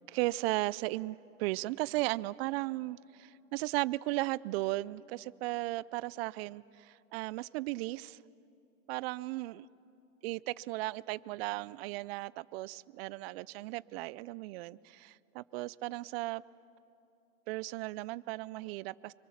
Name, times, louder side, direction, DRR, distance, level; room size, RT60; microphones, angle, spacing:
voice 1, 0.1-8.2 8.9-9.7 10.2-16.4 17.5-19.1, right 19 dB, 50° right, 22 dB, 0.5 m, -36 dB
26.5 x 25.0 x 7.2 m, 2.7 s
supercardioid pair, 135°, 41 cm